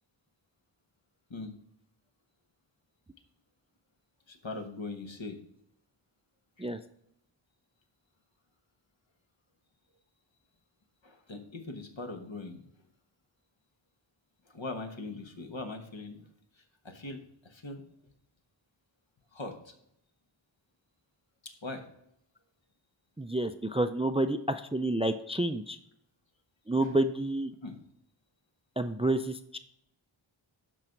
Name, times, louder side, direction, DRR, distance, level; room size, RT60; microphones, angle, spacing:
voice 1, 4.3-5.4 6.6-6.7 11.0-12.6 14.5-16.3 16.5-17.8 19.3-19.7 21.4-21.8 26.8-26.9 27.6-27.8, left 3 dB, 65° left, 4 dB, 1.3 m, -41 dB
voice 2, 23.2-25.8 26.7-27.5 28.8-29.6, right 1 dB, 15° right, 10 dB, 0.4 m, -29 dB
11.5 x 4.0 x 4.5 m, 0.75 s
wide cardioid pair, 40°, 48 cm